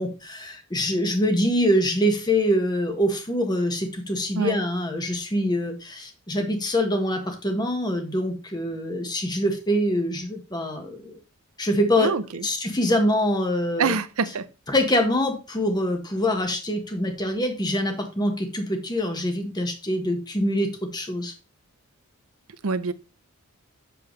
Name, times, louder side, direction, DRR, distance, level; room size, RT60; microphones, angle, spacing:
voice 1, 0.0-11.2 11.6-12.1 12.4-14.0 14.7-21.3, equal, 20° left, 1.4 m, -24 dB
voice 2, 12.0-12.4 13.8-14.5 22.6-22.9, right 4 dB, 75° right, 0.6 m, -25 dB
7.7 x 6.9 x 3.2 m
head